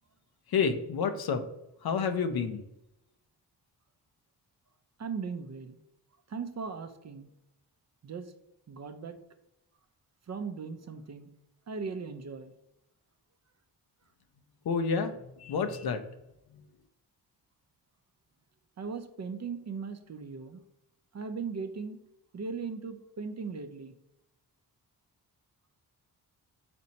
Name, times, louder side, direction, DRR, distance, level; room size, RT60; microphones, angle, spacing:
voice 1, 0.5-1.5 1.8-2.6 14.6-16.0 16.5-16.6, left 5 dB, 60° left, 9 dB, 0.6 m, -29 dB
voice 2, 5.0-5.8 6.3-7.3 8.0-8.3 8.7-9.2 10.3-11.3 11.7-12.5 18.8-20.6 21.1-22.0 22.3-23.9, right 5 dB, 40° right, 8 dB, 0.5 m, -38 dB
4.3 x 4.0 x 2.8 m, 0.88 s
supercardioid pair, 50°, 42 cm